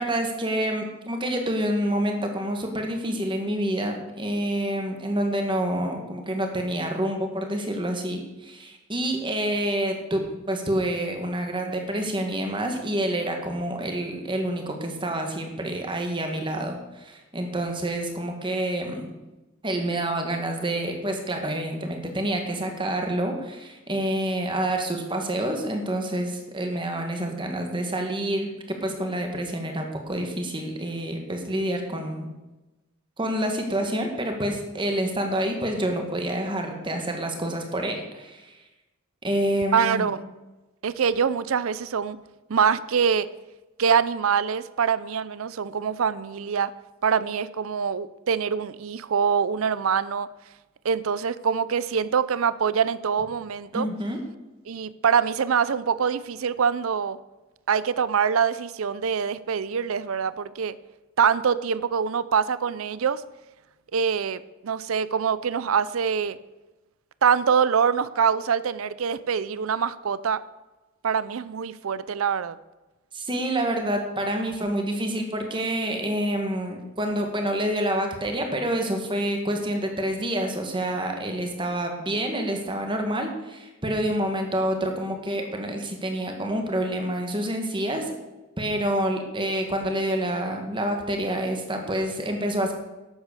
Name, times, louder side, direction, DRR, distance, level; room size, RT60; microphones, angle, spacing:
voice 1, 0.0-19.1 19.6-32.3 33.2-38.6 39.2-40.1 53.7-54.2 73.1-88.1 88.6-92.7, right 1 dB, 25° right, 3 dB, 1.8 m, -28 dB
voice 2, 39.7-40.2 40.8-42.2 42.5-43.3 43.8-46.7 47.0-50.3 50.8-53.9 54.7-57.2 57.7-60.8 61.2-63.2 63.9-66.4 67.2-70.4 71.0-72.6, right 6 dB, 75° right, 16 dB, 0.5 m, -24 dB
12.0 x 8.2 x 6.7 m, 1.1 s
head